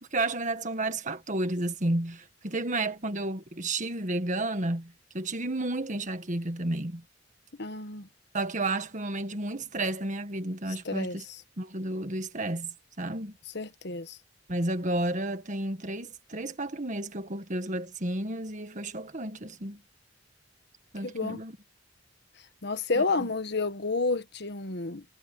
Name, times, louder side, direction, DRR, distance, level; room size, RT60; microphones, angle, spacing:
voice 1, 0.0-7.0 8.3-11.2 11.6-13.3 14.5-19.8 20.9-21.6 22.9-23.3, right 2 dB, 40° right, 1.8 m, -32 dB
voice 2, 7.6-8.1 10.8-11.2 13.5-14.2 21.0-21.4 22.6-25.0, left 3 dB, 60° left, 1.4 m, -30 dB
head